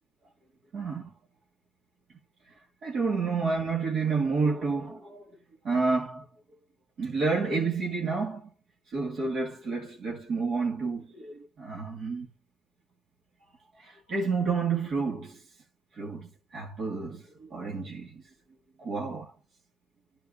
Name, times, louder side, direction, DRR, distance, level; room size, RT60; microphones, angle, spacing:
voice 1, 0.7-1.1 2.5-2.6 2.8-5.2 5.6-6.2 7.0-8.5 8.9-12.3 13.8-15.4 15.9-18.2 18.8-19.3, right 4 dB, 65° right, 2.1 m, -30 dB
12.0 x 4.5 x 2.5 m
cardioid pair, 90°, 0 cm